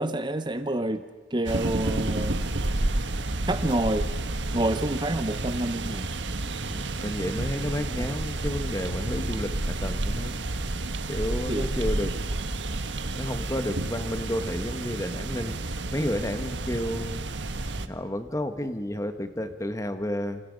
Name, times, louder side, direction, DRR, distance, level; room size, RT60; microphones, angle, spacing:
voice 1, 0.0-2.4 3.5-4.1 4.5-6.1 8.0-8.1 11.5-11.7, right 1 dB, 25° right, 10 dB, 0.9 m, -28 dB
sound 1, 1.5-17.9, right 2 dB, 85° right, 1.3 m, -30 dB
voice 2, 6.6-10.4 11.1-12.2 13.1-17.2 17.8-20.4, left 1 dB, 15° left, 9 dB, 1.4 m, -31 dB
29.0 x 27.5 x 5.3 m, 1.2 s
head